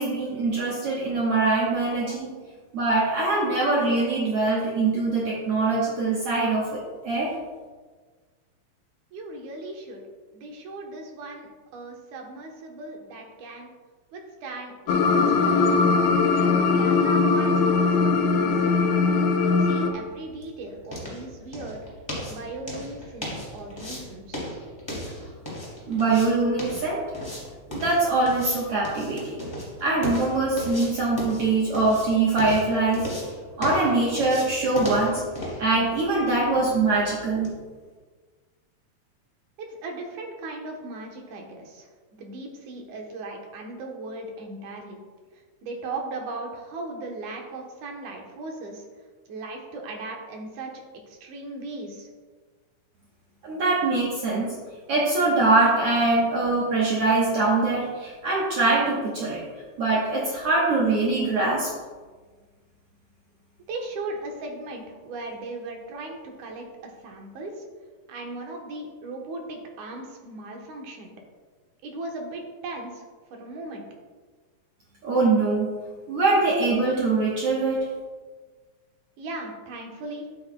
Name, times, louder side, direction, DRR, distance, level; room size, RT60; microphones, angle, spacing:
voice 1, 0.0-2.3 2.7-7.3 25.9-27.1 27.7-29.4 29.8-33.1 33.6-35.2 35.6-37.5 53.4-54.5 54.9-59.4 59.8-61.7 75.0-75.7 76.1-77.8, right 3 dB, 60° right, -5 dB, 1.9 m, -23 dB
voice 2, 9.1-10.0 10.3-13.7 14.1-15.8 16.4-18.9 19.3-21.8 22.3-24.5 39.6-41.9 42.2-45.0 45.6-48.8 49.3-52.1 63.7-67.7 68.1-71.1 71.8-73.1 73.3-73.8 79.2-80.3, right 2 dB, 75° right, 1 dB, 2.5 m, -38 dB
sound 1, 14.9-19.9, left 4 dB, 85° left, 2.1 m, -20 dB
sound 2, 19.8-37.6, left 1 dB, 10° left, 2.0 m, -37 dB
10.5 x 8.4 x 2.2 m, 1.4 s
omnidirectional pair, 3.5 m